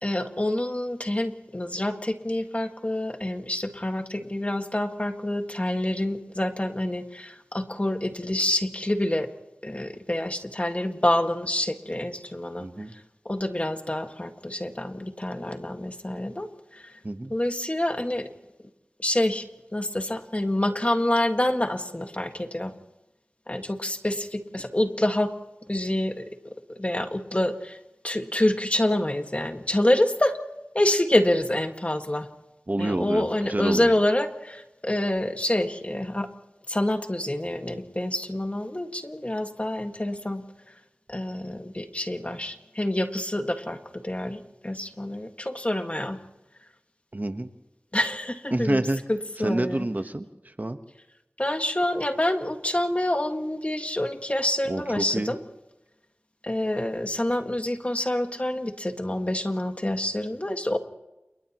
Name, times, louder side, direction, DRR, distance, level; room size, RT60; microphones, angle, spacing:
voice 1, 0.0-9.3 9.6-12.7 13.2-16.9 17.3-18.3 19.0-19.4 19.7-22.7 23.5-25.3 25.7-27.8 28.0-30.4 30.7-32.3 32.8-36.3 36.7-40.4 41.1-46.2 47.9-48.8 49.1-49.9 51.4-55.4 56.4-60.8, left 1 dB, 30° left, 5 dB, 1.8 m, -27 dB
voice 2, 12.6-12.9 17.0-17.3 32.7-33.9 47.1-47.5 48.5-49.0 49.4-50.8 54.7-55.3, right 1 dB, 40° right, 8 dB, 1.2 m, -28 dB
29.5 x 28.5 x 3.1 m, 0.98 s
wide cardioid pair, 50°, 4 cm